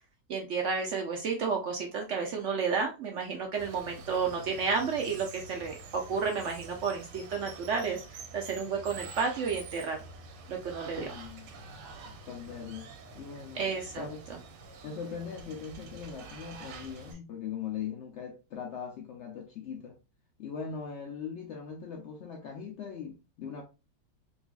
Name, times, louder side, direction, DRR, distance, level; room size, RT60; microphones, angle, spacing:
voice 1, 0.3-10.0 10.5-11.1 13.5-14.4, right 5 dB, 70° right, 0.7 m, -32 dB
Water, 3.6-17.1, right 3 dB, 85° right, 1.3 m, -47 dB
voice 2, 11.0-11.5 12.1-12.9 13.1-13.7 14.0-14.2 14.8-20.0 20.4-23.6, left 7 dB, 90° left, 0.6 m, -40 dB
4.0 x 2.7 x 2.3 m
omnidirectional pair, 1.9 m